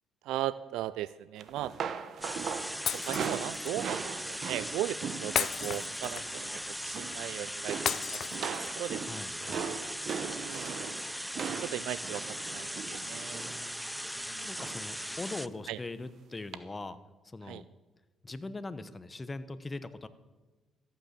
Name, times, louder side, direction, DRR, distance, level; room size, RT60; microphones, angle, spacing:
voice 1, 0.2-1.7 3.0-9.0 9.4-9.5 10.3-11.0 11.6-13.4 14.2-14.5 15.7-15.8 17.5-17.6, right 14 dB, 85° right, 17 dB, 0.3 m, -38 dB
sound 1, 1.4-5.9 6.2-6.5 6.8-7.3 7.7-13.7 14.6-14.9 15.3-15.5 16.5-16.6, right 7 dB, 65° right, 0.9 m, -39 dB
sound 2, 2.2-15.5, equal, ahead, 0.6 m, -39 dB
Shatter, 2.9-3.7 5.3-6.4 7.9-8.9, left 8 dB, 65° left, 0.6 m, -34 dB
voice 2, 9.0-9.7 13.3-13.8 14.4-17.0 17.2-17.7 18.2-20.1, left 2 dB, 25° left, 13 dB, 1.1 m, -41 dB
14.0 x 9.0 x 6.8 m, 1.2 s
supercardioid pair, 65°, 0 cm